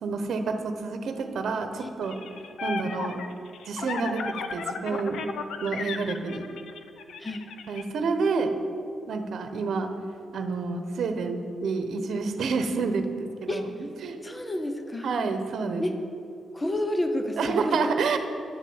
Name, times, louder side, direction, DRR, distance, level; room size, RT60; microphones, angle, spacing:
voice 1, 0.0-2.2 2.6-3.2 3.7-5.2 5.6-6.5 7.7-8.5 9.1-9.9 10.3-13.6 14.0-14.2 15.0-15.8 17.4-18.2, right 4 dB, 65° right, 7 dB, 1.0 m, -28 dB
sound 1, 2.0-7.8, left 5 dB, 85° left, 0.7 m, -35 dB
voice 2, 14.2-15.2 15.8-16.0 16.5-17.8, left 1 dB, 15° left, 6 dB, 0.8 m, -30 dB
11.0 x 6.6 x 8.7 m, 2.7 s
wide cardioid pair, 145°, 0 cm